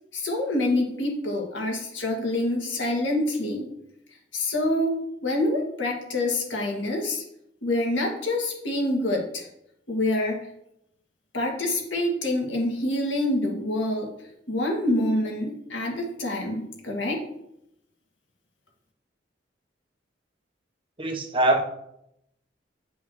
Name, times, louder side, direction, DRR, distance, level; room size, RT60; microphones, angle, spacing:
voice 1, 0.1-3.7 4.3-5.0 5.2-7.2 7.6-9.5 9.9-10.4 11.3-14.1 14.5-17.3, left 1 dB, 85° left, 0 dB, 2.0 m, -26 dB
voice 2, 21.0-21.6, right 2 dB, 30° right, 3 dB, 0.8 m, -22 dB
9.2 x 5.6 x 3.1 m, 0.79 s
head